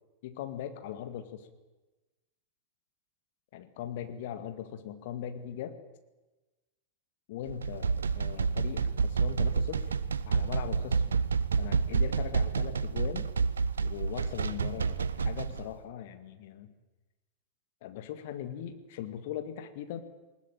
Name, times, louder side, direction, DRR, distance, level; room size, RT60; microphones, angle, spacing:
voice 1, 0.2-1.5 3.5-5.8 7.3-9.9 10.3-11.1 11.6-13.3 13.8-16.7 17.8-20.0, left 10 dB, 50° left, 9 dB, 2.0 m, -40 dB
sound 1, 7.5-15.6, right 5 dB, 70° right, 0.8 m, -29 dB
20.5 x 20.0 x 9.0 m, 1.1 s
figure-of-eight pair, 90°, 0 cm